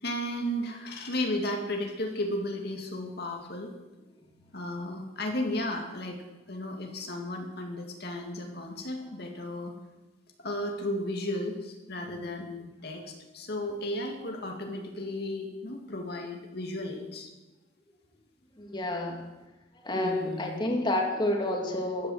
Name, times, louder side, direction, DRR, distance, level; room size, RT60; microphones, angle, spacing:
voice 1, 0.0-3.7 4.5-9.7 10.4-17.3 19.9-20.6, left 1 dB, 55° left, 2 dB, 2.1 m, -34 dB
voice 2, 18.6-19.2 19.8-22.1, left 1 dB, 25° left, 1 dB, 2.2 m, -29 dB
14.0 x 10.5 x 7.9 m, 1.1 s
head